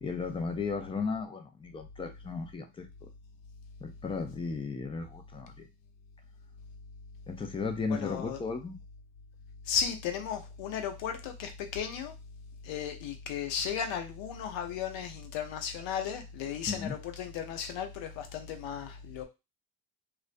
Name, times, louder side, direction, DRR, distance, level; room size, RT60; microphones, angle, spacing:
voice 1, 0.0-2.9 3.8-5.7 7.3-8.8 16.7-17.0, left 4 dB, 15° left, 0.3 m, -35 dB
voice 2, 7.9-8.4 9.7-12.1 12.6-19.2, left 7 dB, 65° left, 0.7 m, -35 dB
2.4 x 2.0 x 2.5 m
hypercardioid pair, 60°, 48 cm